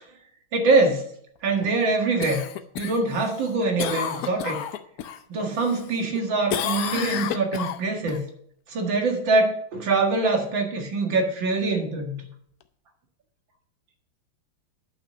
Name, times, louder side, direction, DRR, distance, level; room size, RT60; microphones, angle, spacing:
voice 1, 0.5-1.0 1.4-2.4 2.8-4.6 5.3-8.2 8.7-12.2, right 3 dB, 70° right, 2 dB, 2.5 m, -23 dB
Cough, 2.2-5.2 5.6-6.2 6.5-8.2 12.6-12.7, left 9 dB, 65° left, 0.9 m, -31 dB
10.0 x 5.9 x 6.6 m, 0.67 s
omnidirectional pair, 2.1 m